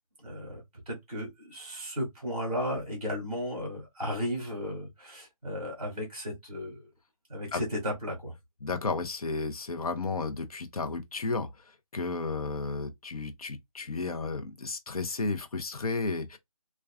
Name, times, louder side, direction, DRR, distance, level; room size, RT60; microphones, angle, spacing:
voice 1, 0.2-0.6 0.8-6.8 7.3-8.3, equal, ahead, 0.8 m, -34 dB
voice 2, 8.6-11.6 11.9-16.4, left 3 dB, 75° left, 0.7 m, -33 dB
2.4 x 2.3 x 2.2 m
hypercardioid pair, 180°, 19 cm